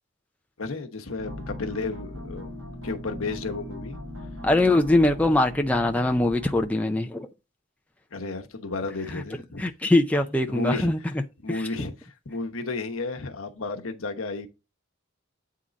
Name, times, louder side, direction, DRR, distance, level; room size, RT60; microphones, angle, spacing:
voice 1, 0.6-2.5 2.8-4.0 8.1-9.6 10.5-11.1 11.4-14.5, left 3 dB, 85° left, 1.0 m, -32 dB
sound 1, 1.2-6.7, left 1 dB, 75° right, 2.1 m, -39 dB
voice 2, 4.4-7.3 9.1-9.2 9.6-11.0 11.5-11.6, left 2 dB, 5° left, 0.4 m, -22 dB
8.6 x 3.8 x 4.0 m
head